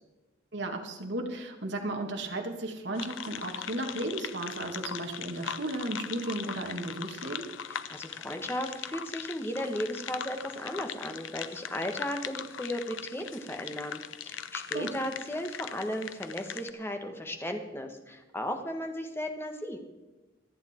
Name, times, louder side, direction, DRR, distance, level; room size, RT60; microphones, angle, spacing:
voice 1, 0.5-7.5 14.7-14.9, right 2 dB, 60° right, 3 dB, 1.9 m, -34 dB
sound 1, 3.0-16.7, left 8 dB, 85° left, 0.7 m, -40 dB
voice 2, 7.7-19.8, equal, 10° left, 5 dB, 1.4 m, -35 dB
26.0 x 8.7 x 4.4 m, 1.1 s
head